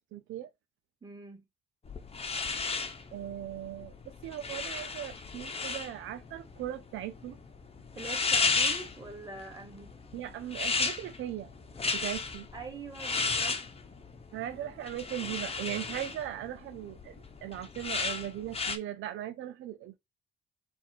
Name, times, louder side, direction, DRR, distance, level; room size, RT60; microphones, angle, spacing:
voice 1, 0.1-0.5 3.1-3.9 4.2-7.4 10.1-11.5 11.9-12.5 14.3-20.0, right 12 dB, 80° right, 0.6 m, -38 dB
voice 2, 1.0-1.4 7.9-9.9 12.5-13.6, right 4 dB, 20° right, 2.4 m, -44 dB
sound 1, 1.9-18.8, left 4 dB, 30° left, 0.9 m, -34 dB
4.6 x 2.6 x 4.3 m
cardioid pair, 90°, 20 cm